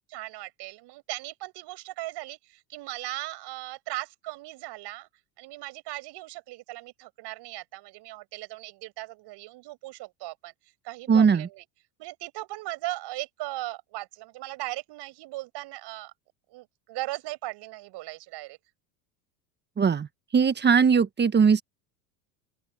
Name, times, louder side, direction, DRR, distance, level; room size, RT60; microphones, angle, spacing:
voice 1, 0.1-5.1 5.4-10.5 10.8-11.6 12.0-16.1 16.5-18.6, right 18 dB, 55° right, 6.4 m, -38 dB
voice 2, 11.1-11.5 19.8-20.1 20.3-21.6, right 6 dB, 20° right, 1.4 m, -20 dB
open air
hypercardioid pair, 105°, 50 cm